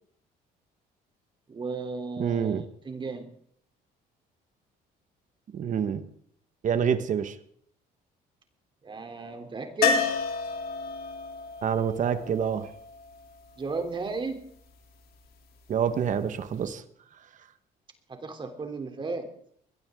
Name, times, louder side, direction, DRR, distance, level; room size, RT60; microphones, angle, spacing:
voice 1, 1.5-3.3 8.8-10.1 13.6-14.4 18.1-19.3, right 4 dB, 30° right, 5 dB, 3.3 m, -34 dB
voice 2, 2.2-2.7 5.5-6.0 6.6-7.4 11.6-12.7 15.7-16.8, right 7 dB, 50° right, 10 dB, 1.4 m, -27 dB
sound 1, 9.8-13.7 16.4-16.5 16.7-16.8, left 6 dB, 65° left, 3.2 m, -30 dB
21.5 x 17.0 x 3.8 m, 0.63 s
cardioid pair, 110°, 17 cm